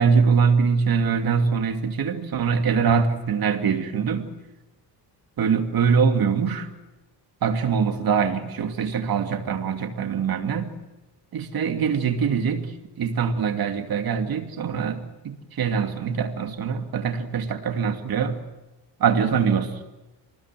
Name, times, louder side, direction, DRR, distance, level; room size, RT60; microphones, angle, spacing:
voice 1, 0.0-4.3 5.4-6.7 7.4-10.7 11.3-18.3 19.0-19.8, right 6 dB, 55° right, 6 dB, 2.6 m, -23 dB
28.0 x 20.5 x 7.7 m, 1.1 s
wide cardioid pair, 160°, 42 cm